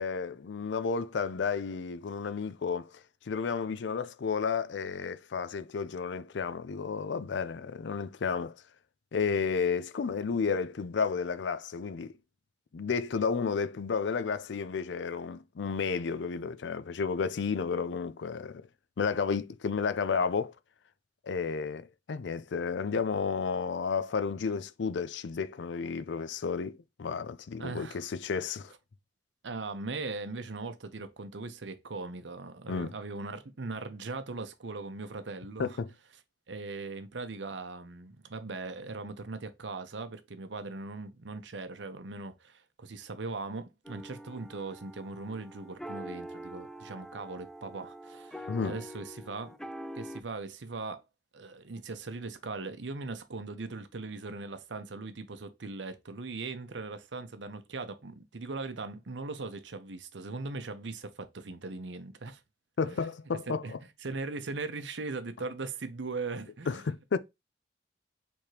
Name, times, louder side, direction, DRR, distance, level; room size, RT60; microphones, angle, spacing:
voice 1, 0.0-2.9 3.3-8.5 9.1-12.1 12.7-18.7 19.0-20.5 21.2-28.7 32.7-32.9 35.6-35.9 48.5-48.7 62.8-63.8 66.7-67.2, left 5 dB, 80° left, 0.5 m, -32 dB
voice 2, 27.6-28.1 29.4-35.8 36.5-49.6 49.9-51.0 51.3-62.4 62.8-63.1 63.5-66.8, right 3 dB, 85° right, 0.8 m, -39 dB
sound 1, 43.8-50.2, equal, 5° left, 0.3 m, -44 dB
4.7 x 3.5 x 2.8 m
head